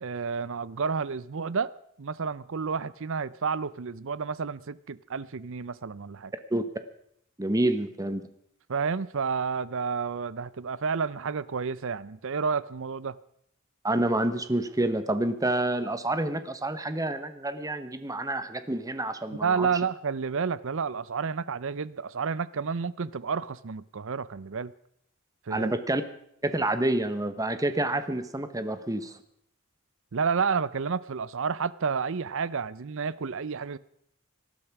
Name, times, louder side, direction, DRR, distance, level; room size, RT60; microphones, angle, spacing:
voice 1, 0.0-1.7 2.0-6.3 8.7-13.2 19.4-24.7 25.5-25.7 30.1-33.8, right 5 dB, 60° right, 19 dB, 0.6 m, -30 dB
voice 2, 7.4-8.3 13.8-19.7 25.5-26.0 26.4-29.1, right 1 dB, 15° right, 11 dB, 1.0 m, -28 dB
18.5 x 12.5 x 6.0 m, 0.72 s
head